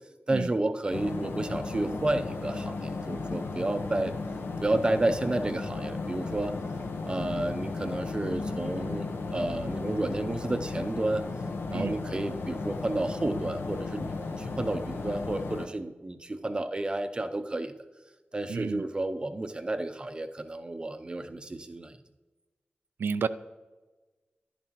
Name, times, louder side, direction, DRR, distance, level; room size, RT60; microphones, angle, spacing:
voice 1, 0.3-4.1 4.6-6.6 7.1-11.2 11.7-17.7 18.3-22.0, right 2 dB, 25° right, 9 dB, 0.6 m, -31 dB
sound 1, 0.9-15.7, left 3 dB, 85° left, 0.9 m, -35 dB
voice 2, 18.5-18.8 23.0-23.3, right 5 dB, 80° right, 12 dB, 0.4 m, -30 dB
11.0 x 11.0 x 3.0 m, 1.2 s
wide cardioid pair, 135°, 4 cm